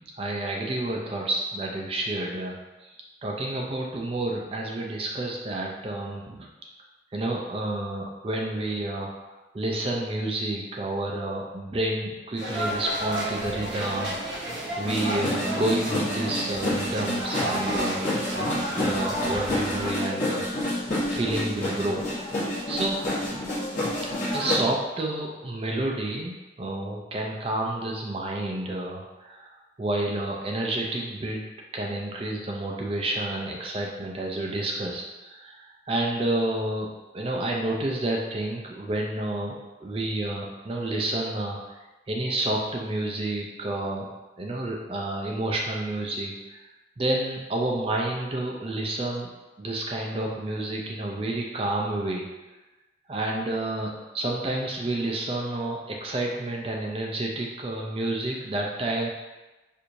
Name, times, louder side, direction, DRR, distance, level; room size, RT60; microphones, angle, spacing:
voice 1, 0.0-2.9 3.2-6.5 7.1-14.5 14.8-18.1 18.3-20.8 21.1-22.1 22.7-23.4 24.0-29.5 29.8-31.4 31.7-36.9 37.1-39.6 39.8-41.6 42.1-44.1 44.4-46.6 47.0-49.3 49.6-52.3 53.1-59.1, right 1 dB, 30° right, -1 dB, 0.4 m, -30 dB
sound 1, 12.4-19.9, right 1 dB, 85° right, 1.3 m, -32 dB
sound 2, 14.8-24.6, left 1 dB, 45° left, 1.0 m, -29 dB
4.4 x 2.6 x 2.6 m, 1.1 s
head